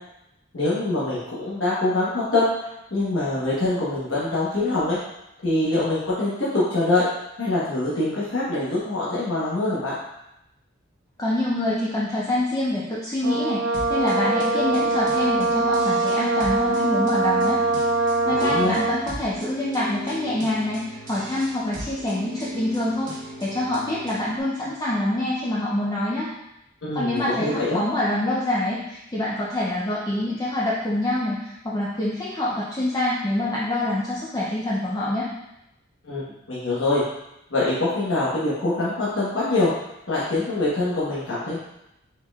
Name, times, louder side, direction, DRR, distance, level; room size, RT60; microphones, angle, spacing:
voice 1, 0.5-5.0 5.4-7.1 7.4-10.0 18.4-18.8 26.8-27.8 36.0-36.2 36.5-37.0 37.5-39.7 40.1-41.6, left 2 dB, 70° left, -8 dB, 1.1 m, -24 dB
voice 2, 11.2-17.6 18.0-26.3 26.9-35.3, left 1 dB, 20° left, -6 dB, 0.5 m, -26 dB
Brass instrument, 13.2-19.1, right 3 dB, 80° right, 0.5 m, -23 dB
sound 1, 13.7-24.4, left 1 dB, 40° right, 1.1 m, -36 dB
4.6 x 4.3 x 2.3 m, 0.87 s
head